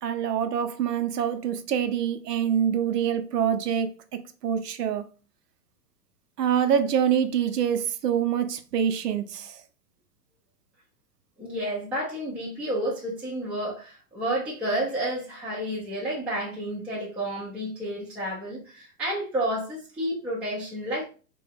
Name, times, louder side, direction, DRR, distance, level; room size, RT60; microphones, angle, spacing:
voice 1, 0.0-3.9 4.4-5.1 6.4-9.6, right 8 dB, 80° right, 0.7 m, -25 dB
voice 2, 11.4-21.0, right 1 dB, 5° right, 0.4 m, -30 dB
3.4 x 2.3 x 3.4 m
hypercardioid pair, 130°, 47 cm